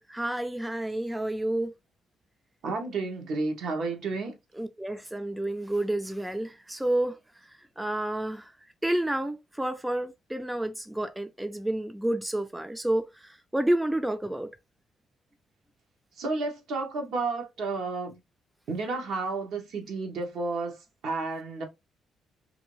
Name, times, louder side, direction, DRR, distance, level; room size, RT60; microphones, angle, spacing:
voice 1, 0.1-1.8 4.5-7.2 7.8-8.5 8.8-14.5, right 1 dB, 5° right, 0.3 m, -30 dB
voice 2, 2.6-4.4 16.2-18.2 18.7-20.8 21.0-21.6, right 3 dB, 70° right, 1.0 m, -31 dB
2.6 x 2.6 x 3.0 m
cardioid pair, 110°, 0 cm